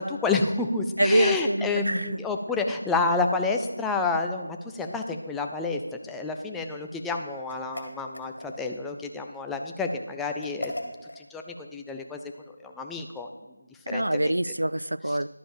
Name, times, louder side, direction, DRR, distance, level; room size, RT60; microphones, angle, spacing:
voice 1, 0.0-10.7 11.2-12.2 12.6-13.3 13.9-14.3, left 3 dB, 5° left, 3 dB, 0.4 m, -29 dB
voice 2, 1.0-2.2 13.9-15.3, right 1 dB, 85° right, 18 dB, 0.4 m, -25 dB
sound 1, 7.5-8.8 10.4-11.2, left 1 dB, 70° left, 1.9 m, -38 dB
11.5 x 5.1 x 6.6 m, 1.1 s
figure-of-eight pair, 170°, 0 cm